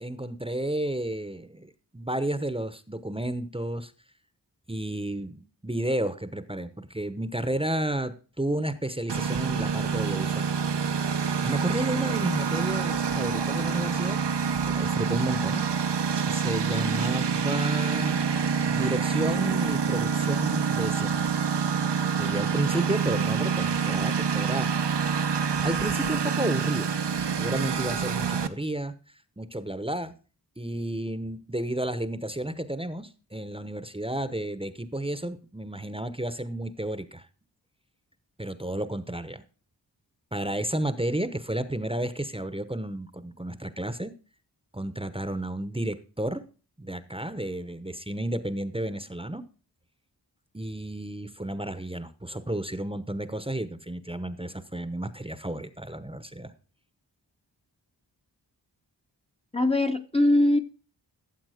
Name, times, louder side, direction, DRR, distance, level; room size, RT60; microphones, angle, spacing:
voice 1, 0.0-3.9 4.7-10.5 11.4-14.2 14.6-15.7 16.3-18.2 18.7-21.2 22.2-24.7 25.6-26.9 27.4-28.9 29.4-30.1 30.6-37.3 38.4-39.4 40.3-44.1 44.7-46.4 46.8-49.4 50.5-56.5, right 1 dB, 15° right, 12 dB, 0.9 m, -32 dB
Engine, 9.1-28.5, right 6 dB, 70° right, 0.9 m, -27 dB
voice 2, 59.5-60.6, left 1 dB, 15° left, 4 dB, 0.8 m, -21 dB
13.5 x 7.3 x 4.9 m, 0.37 s
wide cardioid pair, 55°, 42 cm